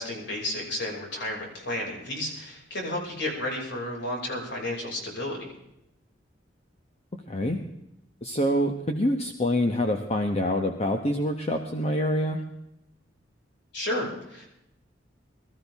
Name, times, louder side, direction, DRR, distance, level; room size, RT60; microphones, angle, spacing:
voice 1, 0.0-5.5 13.7-14.5, left 1 dB, 65° left, -1 dB, 5.8 m, -32 dB
voice 2, 7.3-7.6 8.2-12.4, equal, 35° left, 4 dB, 1.2 m, -26 dB
23.5 x 14.0 x 3.6 m, 0.83 s
head